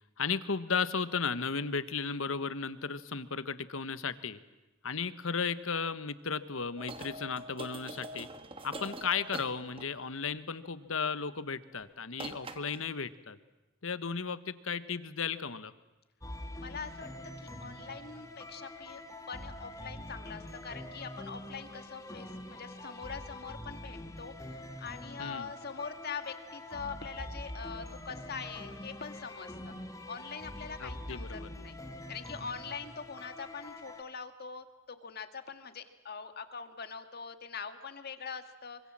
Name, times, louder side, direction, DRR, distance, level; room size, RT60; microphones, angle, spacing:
voice 1, 0.2-4.4 4.8-8.3 8.6-13.4 13.8-15.7 25.2-25.5 30.8-31.5, left 5 dB, 70° left, 14 dB, 1.2 m, -35 dB
sound 1, 6.8-10.2 11.7-11.9 12.1-12.9, right 2 dB, 25° right, 1.4 m, -44 dB
sound 2, 16.2-34.0, left 1 dB, 15° left, 2.0 m, -45 dB
voice 2, 16.6-17.1 17.4-19.0 19.3-29.7 30.1-31.8 32.1-38.8, left 5 dB, 50° left, 9 dB, 1.9 m, -43 dB
25.5 x 24.5 x 7.5 m, 1.0 s
head